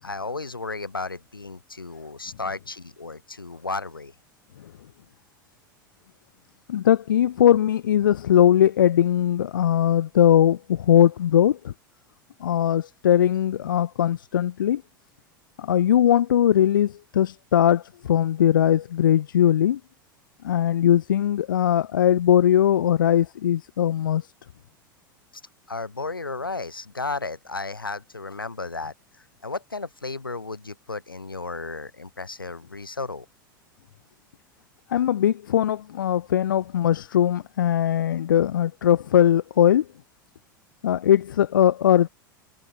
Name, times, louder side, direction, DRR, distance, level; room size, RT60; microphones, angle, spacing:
voice 1, 0.0-4.1 25.7-33.3, left 3 dB, 85° left, 1.7 m, -34 dB
voice 2, 6.7-11.7 12.4-14.8 15.6-19.8 20.4-24.3 34.9-39.9 40.8-42.1, left 10 dB, 70° left, 0.5 m, -20 dB
figure-of-eight pair, 85°, 11 cm